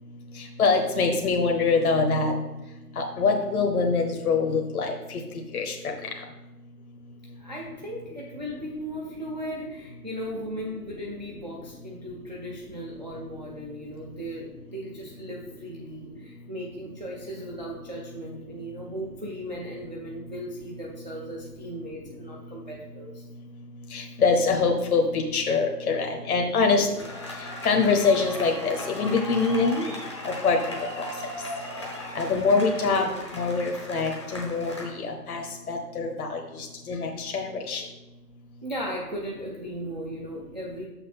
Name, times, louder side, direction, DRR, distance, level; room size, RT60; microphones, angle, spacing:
voice 1, 0.6-2.3 3.0-5.2 5.5-5.9 23.9-26.9 27.6-29.9 30.2-31.1 32.1-33.1 33.3-35.4 35.7-36.4 36.9-37.8, left 4 dB, 65° left, 3 dB, 1.0 m, -24 dB
voice 2, 7.4-23.2 26.7-26.9 32.9-33.1 38.6-40.9, equal, 30° right, -3 dB, 0.5 m, -37 dB
sound 1, 27.0-34.9, left 1 dB, 20° left, 0.6 m, -37 dB
6.3 x 5.8 x 4.1 m, 1.1 s
hypercardioid pair, 160°, 48 cm